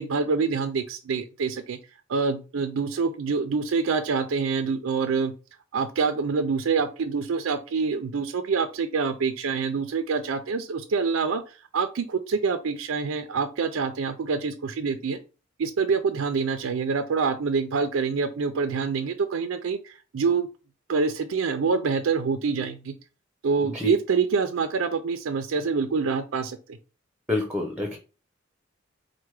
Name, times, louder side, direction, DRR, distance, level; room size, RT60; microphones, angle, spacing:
voice 1, 0.0-1.8 2.1-5.3 5.7-15.2 15.6-20.5 20.9-22.9 23.4-26.6, right 5 dB, 80° right, 8 dB, 0.4 m, -26 dB
voice 2, 27.3-28.0, left 2 dB, 5° right, 3 dB, 0.6 m, -27 dB
4.5 x 2.1 x 4.6 m, 0.33 s
head